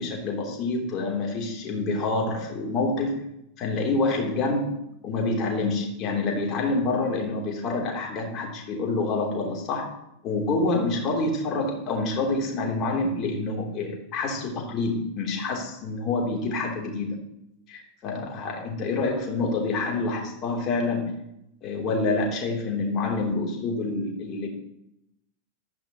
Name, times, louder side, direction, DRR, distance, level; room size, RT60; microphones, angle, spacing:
voice 1, 0.0-3.1 3.6-4.7 5.0-10.0 10.2-17.2 17.7-21.1 21.6-24.5, left 3 dB, 35° left, 1 dB, 3.2 m, -27 dB
14.5 x 12.0 x 3.0 m, 0.80 s
figure-of-eight pair, 90°, 0 cm